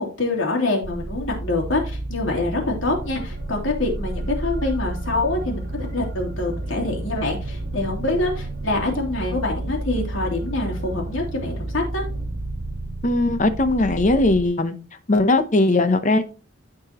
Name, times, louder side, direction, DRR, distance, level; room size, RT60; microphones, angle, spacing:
voice 1, 0.0-12.0, left 2 dB, 75° left, 3.0 m, -25 dB
sound 1, 0.8-14.4, right 2 dB, 75° right, 1.4 m, -31 dB
sound 2, 2.8-12.3, right 1 dB, 50° right, 1.5 m, -40 dB
voice 2, 13.0-14.7 15.1-16.2, left 2 dB, 40° left, 0.8 m, -19 dB
14.0 x 4.8 x 3.0 m
head